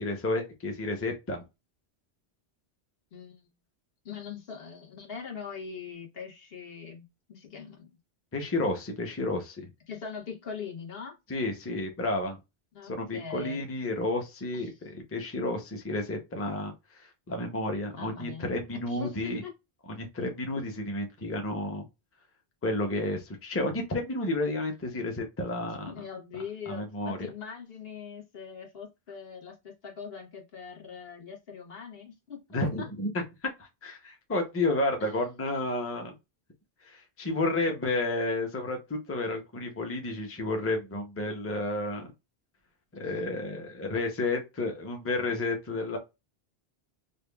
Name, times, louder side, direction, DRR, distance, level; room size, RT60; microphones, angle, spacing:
voice 1, 0.0-1.4 8.3-9.7 11.3-12.4 12.9-16.7 17.3-19.4 20.0-21.9 22.6-25.9 26.7-27.3 32.5-33.2 33.8-36.1 36.9-42.1 42.9-46.0, left 2 dB, 15° left, 0.6 m, -31 dB
voice 2, 3.1-3.5 4.0-7.9 9.9-11.2 12.7-13.7 14.6-14.7 17.9-18.5 18.9-19.5 25.9-32.9 35.0-35.1 43.9-44.0, left 6 dB, 70° left, 1.2 m, -42 dB
5.2 x 2.2 x 2.2 m
omnidirectional pair, 1.1 m